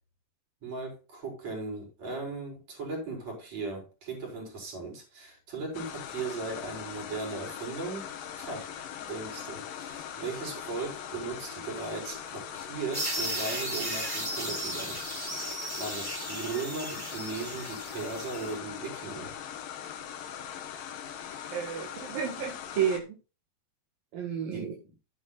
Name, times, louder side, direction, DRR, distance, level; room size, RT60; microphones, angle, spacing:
voice 1, 0.6-15.0 15.3-19.3 24.5-24.7, right 3 dB, 50° right, 6.0 m, -38 dB
sound 1, 5.7-23.0, left 9 dB, 80° left, 3.0 m, -41 dB
sound 2, 12.9-18.5, right 1 dB, 10° right, 1.4 m, -36 dB
voice 2, 21.5-23.0 24.1-24.7, right 8 dB, 85° right, 3.5 m, -31 dB
11.5 x 9.7 x 2.4 m
omnidirectional pair, 3.9 m